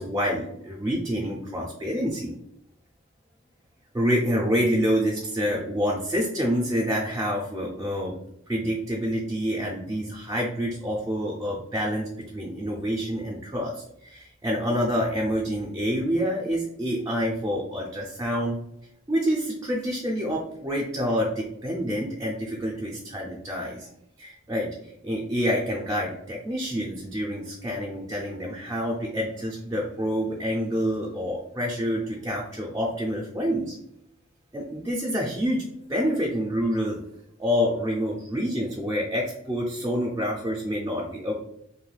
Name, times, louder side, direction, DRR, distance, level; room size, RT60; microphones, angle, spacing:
voice 1, 0.0-2.3 3.9-8.2 8.5-18.6 19.1-23.9 24.2-33.8 34.5-37.0 37.4-41.3, equal, 15° right, -2 dB, 0.4 m, -27 dB
3.2 x 2.6 x 2.3 m, 0.78 s
head